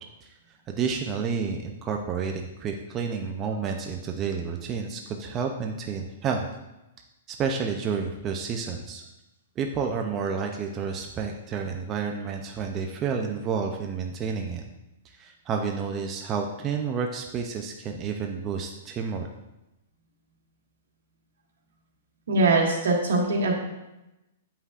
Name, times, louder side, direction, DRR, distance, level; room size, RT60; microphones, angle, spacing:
voice 1, 0.7-6.5 7.3-9.0 9.6-14.6 15.2-19.3, right 6 dB, 20° right, 2 dB, 0.4 m, -30 dB
voice 2, 22.3-23.5, right 2 dB, 75° right, -1 dB, 1.6 m, -22 dB
7.9 x 5.6 x 2.4 m, 0.96 s
hypercardioid pair, 170°, 0 cm